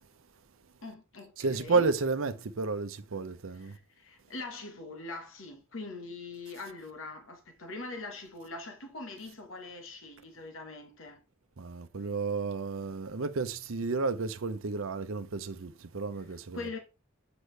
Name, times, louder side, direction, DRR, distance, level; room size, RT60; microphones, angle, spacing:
voice 1, 0.8-1.8 3.5-11.2 16.5-16.8, left 3 dB, 80° left, 1.5 m, -42 dB
voice 2, 1.4-3.8 11.6-16.7, right 4 dB, 90° right, 0.7 m, -32 dB
8.1 x 5.1 x 3.3 m
head